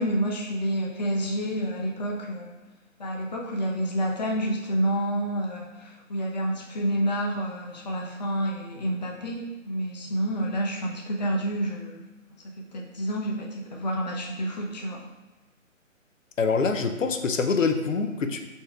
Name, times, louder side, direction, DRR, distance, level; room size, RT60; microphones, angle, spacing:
voice 1, 0.0-2.5 3.0-12.0 12.4-15.0, equal, 35° left, -1 dB, 0.6 m, -29 dB
voice 2, 16.4-18.4, left 4 dB, 70° left, 6 dB, 0.6 m, -25 dB
5.6 x 4.1 x 2.3 m, 1.1 s
figure-of-eight pair, 140°, 40 cm